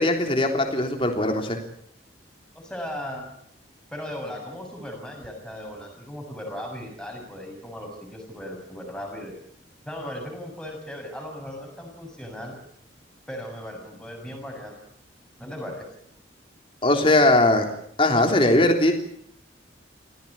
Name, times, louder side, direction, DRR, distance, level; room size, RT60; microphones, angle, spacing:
voice 1, 0.0-1.6 16.8-17.7 18.0-18.9, left 1 dB, 30° left, 4 dB, 3.5 m, -20 dB
voice 2, 2.5-3.2 3.9-9.4 9.8-12.5 13.3-14.8 15.4-15.9, equal, 5° left, 2 dB, 6.9 m, -37 dB
25.0 x 16.5 x 8.7 m, 0.69 s
head